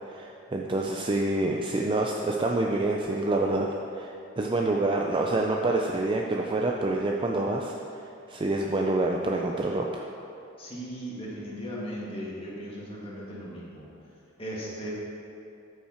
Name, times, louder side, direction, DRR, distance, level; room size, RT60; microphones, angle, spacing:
voice 1, 0.1-3.7 3.9-7.7 8.3-10.1, right 2 dB, 25° right, 0 dB, 0.5 m, -27 dB
voice 2, 10.6-13.9 14.4-14.9, equal, 30° left, -6 dB, 2.0 m, -37 dB
12.5 x 5.7 x 4.4 m, 2.6 s
head